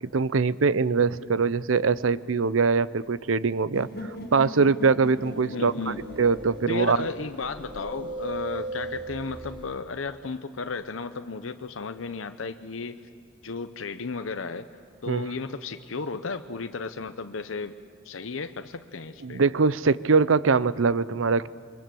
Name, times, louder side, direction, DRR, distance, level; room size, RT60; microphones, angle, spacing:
voice 1, 0.0-5.7 6.2-7.0 15.1-15.2 19.2-21.5, right 4 dB, 85° right, 17 dB, 0.6 m, -23 dB
sound 1, 3.7-7.7, left 1 dB, 50° left, 1.9 m, -40 dB
sound 2, 5.1-9.8, right 2 dB, 25° right, 2.7 m, -38 dB
voice 2, 5.5-6.0 6.7-13.0 13.4-14.7 15.0-17.8 18.0-19.4, left 4 dB, 80° left, 8 dB, 0.8 m, -34 dB
28.0 x 23.0 x 7.7 m, 2.3 s
head